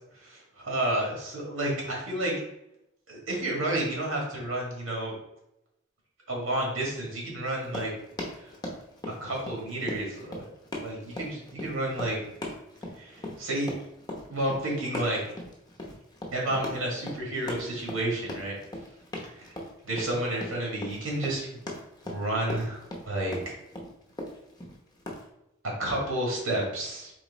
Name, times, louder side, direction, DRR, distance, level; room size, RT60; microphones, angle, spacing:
voice 1, 0.2-2.3 3.1-5.1 6.3-7.9 8.3-8.5 9.1-10.5 10.8-12.2 13.0-13.7 14.3-15.2 16.3-18.5 19.3-19.5 19.8-21.5 22.0-23.5 25.8-27.1, right 1 dB, 85° right, -1 dB, 1.7 m, -31 dB
Run, 7.6-25.2, left 1 dB, 20° left, 0.8 m, -39 dB
4.2 x 3.1 x 4.0 m, 0.83 s
head